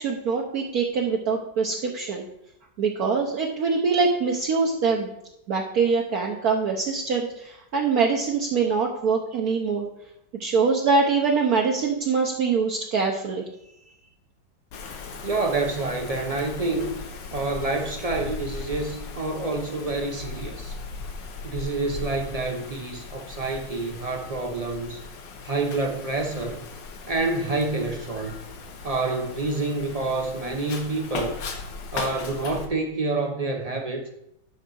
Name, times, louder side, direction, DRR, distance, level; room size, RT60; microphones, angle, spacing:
voice 1, 0.0-2.2 2.8-5.1 5.5-9.9 10.4-13.4, right 5 dB, 60° right, 1.2 m, -24 dB
Wind, 14.7-32.7, left 4 dB, 75° left, 1.7 m, -38 dB
voice 2, 15.2-16.9 17.3-20.7 21.4-25.0 25.4-26.6 27.1-28.4 28.8-31.4 31.9-34.1, right 3 dB, 45° right, 0.5 m, -28 dB
10.0 x 4.0 x 6.2 m
omnidirectional pair, 2.0 m